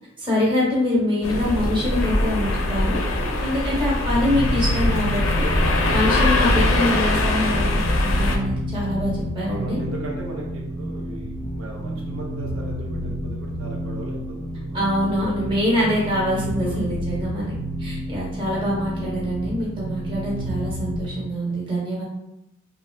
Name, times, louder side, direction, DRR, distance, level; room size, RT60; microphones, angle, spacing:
voice 1, 0.2-3.0 3.4-5.5 5.9-7.7 8.0-9.8 14.7-17.5 17.8-22.0, left 1 dB, 25° right, -6 dB, 0.8 m, -24 dB
sound 1, 1.2-8.4, left 2 dB, 85° left, 0.4 m, -22 dB
sound 2, 4.1-21.1, equal, 30° left, 0.6 m, -30 dB
voice 2, 9.5-15.2 16.6-16.9, right 2 dB, 80° right, -2 dB, 0.6 m, -37 dB
3.1 x 2.4 x 2.2 m, 0.87 s
head